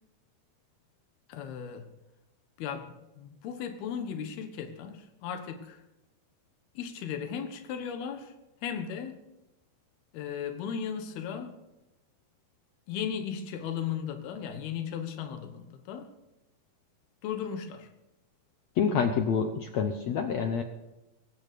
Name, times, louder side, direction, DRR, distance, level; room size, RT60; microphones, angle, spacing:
voice 1, 1.3-1.9 2.6-5.8 6.7-8.3 8.6-9.2 10.1-11.5 12.9-16.1 17.2-17.9, left 8 dB, 90° left, 7 dB, 3.3 m, -36 dB
voice 2, 18.8-20.6, left 6 dB, 70° left, 6 dB, 1.6 m, -27 dB
22.0 x 9.6 x 6.8 m, 1.0 s
omnidirectional pair, 4.3 m